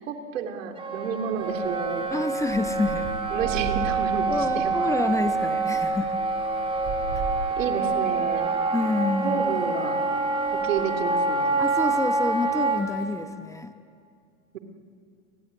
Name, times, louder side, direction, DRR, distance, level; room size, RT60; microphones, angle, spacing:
voice 1, 0.0-2.1 3.3-4.9 7.6-8.5 9.2-10.0 10.5-11.6, right 6 dB, 80° right, 5 dB, 3.1 m, -30 dB
Wind instrument woodwind instrument, 0.8-12.8, right 3 dB, 15° right, 3.2 m, -26 dB
sound 1, 1.4-13.1, right 3 dB, 45° right, 6.3 m, -40 dB
voice 2, 2.1-3.1 4.3-6.2 8.7-9.4 11.6-13.7, left 2 dB, 10° left, 8 dB, 1.1 m, -28 dB
29.5 x 16.5 x 9.6 m, 2.3 s
hypercardioid pair, 120°, 38 cm